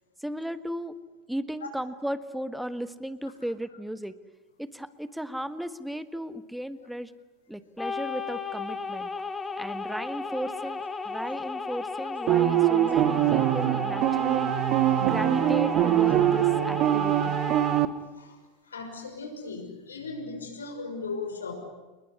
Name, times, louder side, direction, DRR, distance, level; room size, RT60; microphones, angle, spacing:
voice 1, 0.2-1.0 1.3-4.1 4.6-7.1 7.5-9.1 9.6-14.5 15.0-17.4, equal, ahead, 13 dB, 1.5 m, -35 dB
sound 1, 7.8-17.9, left 4 dB, 15° left, 2.4 m, -34 dB
sound 2, 12.3-17.9, right 13 dB, 45° right, 1.4 m, -23 dB
voice 2, 18.7-21.5, left 4 dB, 75° left, 5 dB, 6.1 m, -37 dB
28.5 x 21.5 x 9.8 m, 1.2 s
figure-of-eight pair, 80°, 0 cm